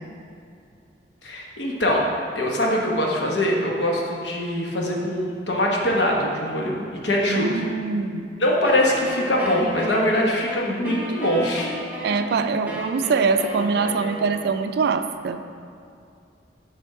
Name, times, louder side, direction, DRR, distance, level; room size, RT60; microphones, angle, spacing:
voice 1, 1.2-2.0 2.3-7.6 8.4-11.7, left 1 dB, 75° left, -1 dB, 1.0 m, -23 dB
voice 2, 7.3-8.3 12.0-15.4, right 4 dB, 60° right, 9 dB, 0.3 m, -23 dB
Wind instrument woodwind instrument, 8.6-14.7, equal, 10° right, 0.8 m, -35 dB
6.9 x 3.5 x 4.7 m, 2.4 s
head